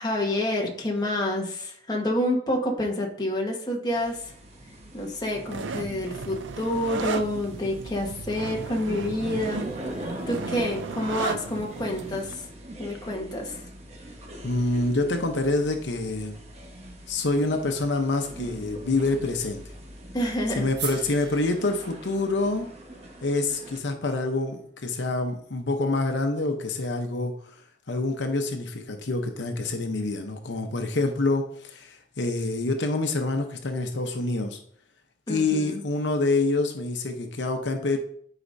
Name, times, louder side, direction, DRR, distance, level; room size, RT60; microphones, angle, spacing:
voice 1, 0.0-4.3 4.9-9.7 10.0-12.5 12.8-13.5 20.1-20.7 35.3-35.8, left 1 dB, 20° left, 0 dB, 1.3 m, -28 dB
sound 1, 3.9-23.8, right 1 dB, 35° right, 1.2 m, -42 dB
sound 2, 5.5-12.3, right 5 dB, 90° right, 0.4 m, -35 dB
voice 2, 14.4-16.4 17.1-19.6 20.6-22.7 23.2-27.3 27.9-34.6 35.3-38.0, left 2 dB, 80° left, 5 dB, 0.8 m, -26 dB
sound 3, 20.7-25.0, right 6 dB, 65° right, 1.1 m, -42 dB
11.5 x 5.0 x 2.7 m, 0.62 s
head